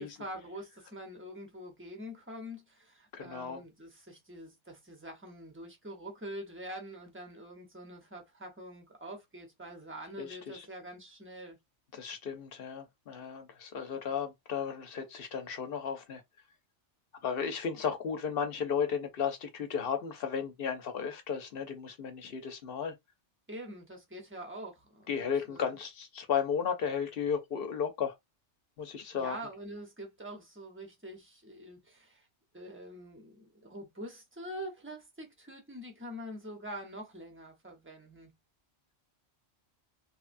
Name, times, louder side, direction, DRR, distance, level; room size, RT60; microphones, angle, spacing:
voice 1, 0.0-11.6 23.5-25.6 29.1-32.3 32.5-38.3, equal, 15° right, 0.7 m, -45 dB
voice 2, 3.1-3.6 10.2-10.7 11.9-16.2 17.2-22.9 25.1-28.1 28.8-29.4, left 7 dB, 55° left, 0.8 m, -34 dB
3.1 x 2.2 x 2.5 m
omnidirectional pair, 1.2 m